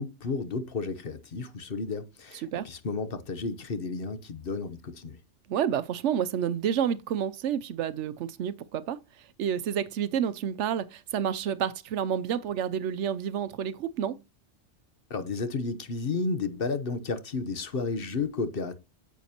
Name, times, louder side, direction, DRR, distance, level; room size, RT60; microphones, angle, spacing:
voice 1, 0.0-5.2 15.1-18.8, left 4 dB, 55° left, 1.1 m, -32 dB
voice 2, 5.5-9.0 9.4-14.2, right 9 dB, 80° right, 0.9 m, -29 dB
9.3 x 7.2 x 2.9 m
omnidirectional pair, 1.2 m